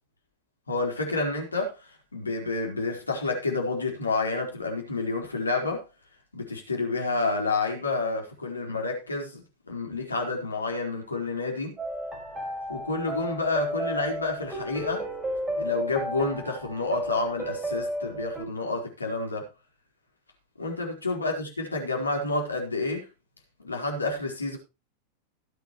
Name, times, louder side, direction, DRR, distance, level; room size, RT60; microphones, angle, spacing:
voice 1, 0.7-5.9 6.3-11.8 12.7-15.1 15.6-19.5 20.6-23.1 23.6-24.6, left 3 dB, 80° left, 4.2 m, -29 dB
sound 1, 11.8-18.4, equal, 10° right, 4.7 m, -33 dB
17.5 x 8.9 x 3.1 m
figure-of-eight pair, 90°, 0 cm